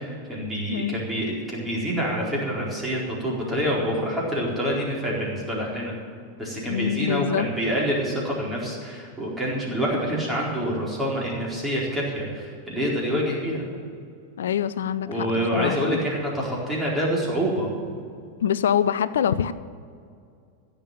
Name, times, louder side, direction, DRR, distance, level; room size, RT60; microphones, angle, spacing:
voice 1, 0.0-6.0 6.4-13.6 15.1-17.7, equal, 10° right, -4 dB, 4.4 m, -27 dB
voice 2, 6.7-7.5 14.4-16.0 18.4-19.5, left 9 dB, 65° left, 15 dB, 0.5 m, -25 dB
15.5 x 6.8 x 9.1 m, 2.3 s
figure-of-eight pair, 90°, 0 cm